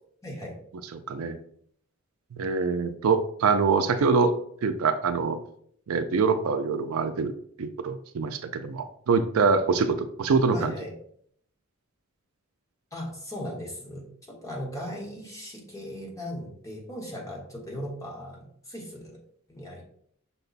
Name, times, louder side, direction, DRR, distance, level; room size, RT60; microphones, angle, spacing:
voice 1, 0.2-0.6 10.5-10.9 12.9-19.2 19.5-19.8, equal, 15° left, -2 dB, 1.1 m, -38 dB
voice 2, 0.9-1.4 2.3-4.4 4.6-5.4 5.9-7.3 7.6-10.7, right 4 dB, 75° right, 9 dB, 0.4 m, -24 dB
5.8 x 2.2 x 3.9 m, 0.63 s
head